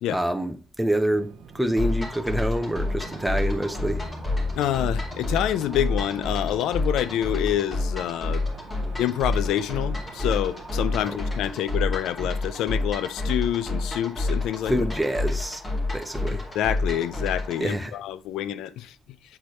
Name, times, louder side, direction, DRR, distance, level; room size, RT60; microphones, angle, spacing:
voice 1, 0.1-4.1 11.0-11.1 14.7-15.6 15.9-16.5 17.6-17.9, right 1 dB, 5° right, 0.8 m, -26 dB
sound 1, 1.1-11.1, right 7 dB, 75° right, 0.6 m, -46 dB
sound 2, 1.8-17.6, left 2 dB, 25° left, 2.3 m, -29 dB
Bass guitar, 3.8-10.0, left 1 dB, 65° left, 2.2 m, -46 dB
voice 2, 4.5-8.4 9.0-14.7 16.3-19.0, left 11 dB, 85° left, 0.4 m, -27 dB
7.9 x 4.1 x 3.2 m
cardioid pair, 90°, 0 cm